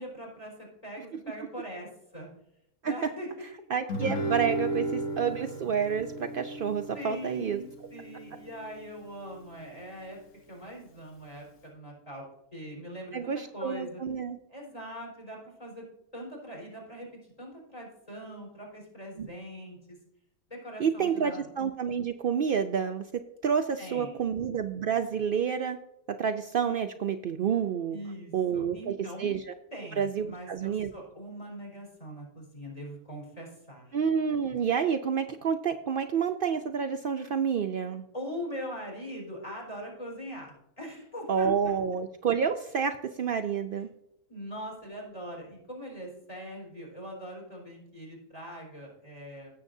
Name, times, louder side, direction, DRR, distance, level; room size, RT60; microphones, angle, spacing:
voice 1, 0.0-2.3 2.8-3.3 6.9-10.2 10.5-12.2 12.5-14.0 14.5-15.8 16.1-17.1 17.4-20.0 20.5-21.5 23.8-24.3 27.9-29.3 29.7-34.0 38.1-41.7 44.3-49.5, equal, 25° left, -2 dB, 4.5 m, -42 dB
voice 2, 3.7-7.6 13.1-14.4 19.2-19.3 20.8-23.1 23.4-25.8 26.2-28.0 28.3-28.9 29.2-29.5 30.0-30.9 33.9-38.0 41.3-43.9, right 7 dB, 75° right, 7 dB, 0.5 m, -29 dB
Guitar, 3.9-9.0, right 1 dB, 60° left, 1.4 m, -35 dB
16.5 x 7.7 x 2.7 m, 0.80 s
omnidirectional pair, 1.6 m